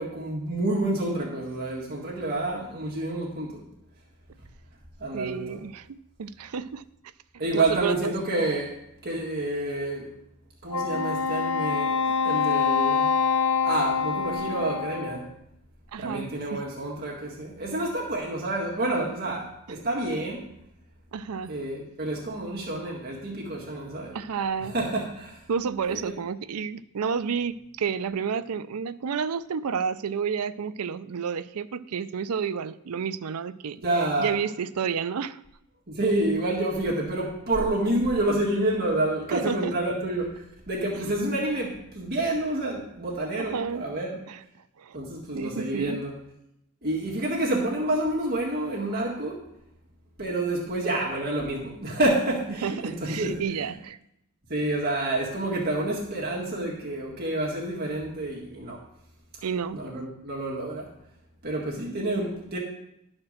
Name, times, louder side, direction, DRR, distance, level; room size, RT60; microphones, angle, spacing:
voice 1, 0.0-3.7 5.0-5.6 7.4-10.1 10.6-13.2 13.6-15.3 16.0-20.5 21.5-24.2 24.6-25.4 25.9-26.1 33.8-34.3 35.9-44.2 44.9-46.1 46.8-49.4 50.2-53.8 54.5-58.8 59.7-60.9 61.4-62.6, right 1 dB, 45° right, -4 dB, 1.8 m, -28 dB
voice 2, 5.1-6.8 7.5-8.1 15.9-16.6 21.1-21.5 24.1-24.7 25.5-33.8 34.2-35.4 39.3-39.7 43.4-43.9 44.3-44.4 44.8-45.0 45.3-46.0 52.6-54.0 59.4-59.8, right 6 dB, 80° right, 14 dB, 0.5 m, -30 dB
Wind instrument woodwind instrument, 10.7-15.3, left 6 dB, 85° left, 0.7 m, -25 dB
11.5 x 4.4 x 6.5 m, 0.80 s
head